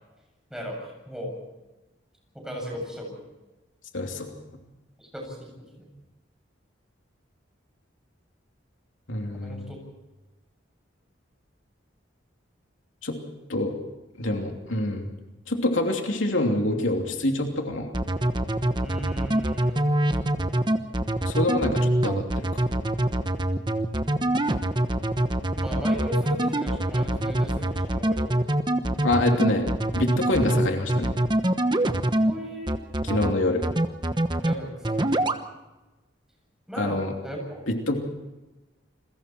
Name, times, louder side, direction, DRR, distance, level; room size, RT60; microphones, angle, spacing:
voice 1, 0.5-1.3 2.3-3.1 5.0-5.9 9.3-9.8 18.8-19.9 25.5-28.5 32.3-32.7 34.4-34.9 36.7-37.6, equal, 5° right, -1 dB, 7.6 m, -36 dB
voice 2, 3.9-4.3 9.1-9.7 13.0-13.2 13.5-13.7 14.2-15.1 15.5-17.9 21.2-22.4 29.0-31.1 33.0-33.6 36.8-37.1 37.7-37.9, left 1 dB, 80° left, 2 dB, 2.9 m, -26 dB
sound 1, 17.9-32.3 32.7-33.3 33.6-34.5 34.8-35.4, right 1 dB, 25° right, 1.1 m, -24 dB
29.5 x 22.0 x 4.5 m, 1.1 s
head